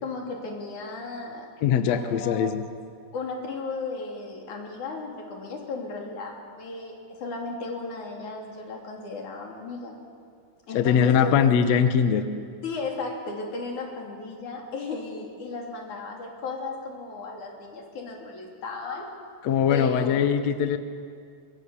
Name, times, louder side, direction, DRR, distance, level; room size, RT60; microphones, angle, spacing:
voice 1, 0.0-1.5 1.9-2.5 3.1-10.0 10.7-11.5 12.6-19.1 19.7-20.2, left 3 dB, 55° left, 0 dB, 4.4 m, -35 dB
voice 2, 1.6-2.6 10.7-12.2 19.4-20.8, left 7 dB, 70° left, 8 dB, 1.7 m, -21 dB
25.0 x 22.5 x 7.0 m, 2.1 s
omnidirectional pair, 4.4 m